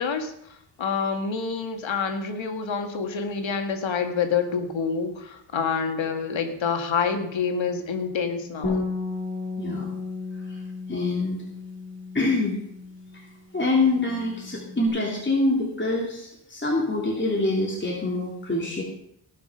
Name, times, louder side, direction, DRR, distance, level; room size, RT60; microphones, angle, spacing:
voice 1, 0.0-8.8, left 5 dB, 80° left, 6 dB, 1.8 m, -27 dB
Bass guitar, 8.6-13.3 13.6-14.9, left 3 dB, 55° left, 4.5 m, -34 dB
voice 2, 9.6-9.9 10.4-10.6 10.9-11.4 12.1-12.6 13.1-13.2 13.5-18.8, left 2 dB, 25° left, -3 dB, 3.1 m, -25 dB
18.0 x 6.2 x 5.2 m, 0.73 s
cardioid pair, 65°, 46 cm